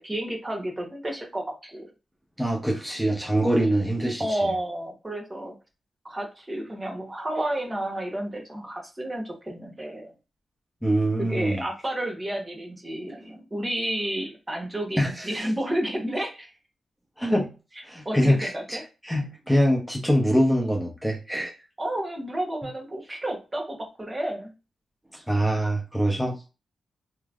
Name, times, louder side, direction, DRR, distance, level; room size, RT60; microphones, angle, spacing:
voice 1, 0.0-1.9 4.2-5.6 6.0-10.1 11.2-16.5 18.0-18.8 21.8-24.5, right 1 dB, 25° right, 1 dB, 1.1 m, -31 dB
voice 2, 2.4-4.4 10.8-11.6 15.0-15.4 17.2-17.5 17.8-21.5 25.3-26.5, equal, ahead, -1 dB, 0.7 m, -24 dB
3.0 x 2.0 x 2.5 m, 0.30 s
cardioid pair, 50°, 0 cm